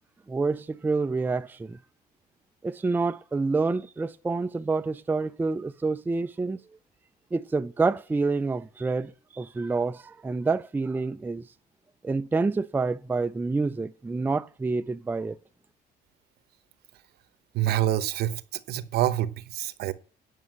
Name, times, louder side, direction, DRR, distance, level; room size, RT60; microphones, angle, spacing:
voice 1, 0.3-1.8 2.6-6.6 7.3-11.4 12.0-15.4, right 3 dB, 10° right, 0.4 m, -28 dB
voice 2, 17.5-19.9, right 13 dB, 70° right, 0.9 m, -27 dB
9.3 x 5.5 x 7.9 m
cardioid pair, 110°, 17 cm